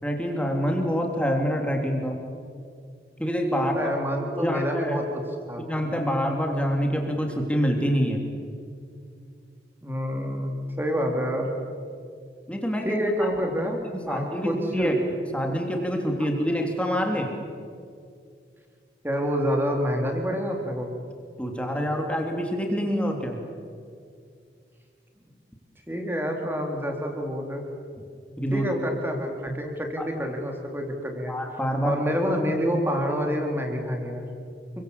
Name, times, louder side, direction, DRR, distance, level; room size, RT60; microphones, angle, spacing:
voice 1, 0.0-2.2 3.2-3.9 4.4-5.0 5.7-8.2 12.5-13.0 13.8-15.0 15.3-17.3 21.4-23.4 28.4-28.6 29.5-29.6 30.0-30.1 31.3-32.0, equal, 5° left, 2 dB, 3.3 m, -26 dB
voice 2, 3.6-5.2 5.5-5.7 9.8-11.5 12.8-14.9 19.0-20.9 25.9-27.6 28.5-31.4 31.8-34.3, equal, 10° right, 2 dB, 3.8 m, -28 dB
29.5 x 23.5 x 8.5 m, 2.3 s
head